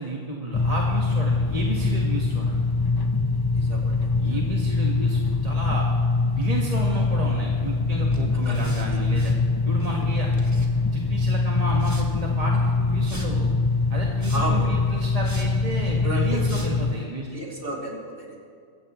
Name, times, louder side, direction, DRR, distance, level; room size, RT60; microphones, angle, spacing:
voice 1, 0.0-2.6 4.1-5.8 6.2-9.3 9.6-10.3 10.9-13.5 13.9-17.3, right 2 dB, 30° right, -2 dB, 1.6 m, -31 dB
sound 1, 0.5-17.0, left 3 dB, 35° left, 0.3 m, -23 dB
voice 2, 3.5-4.4 8.4-8.5 8.8-9.0 14.3-14.6 16.0-16.4 17.3-18.4, right 1 dB, 50° right, -3 dB, 3.1 m, -32 dB
sound 2, 8.1-9.4 9.7-11.0 11.7-12.1 13.0-13.3 14.0-14.6 15.2-15.5 16.0-16.1 16.4-16.7, right 1 dB, 15° right, 1.7 m, -41 dB
23.5 x 15.5 x 3.1 m, 2.2 s
omnidirectional pair, 1.2 m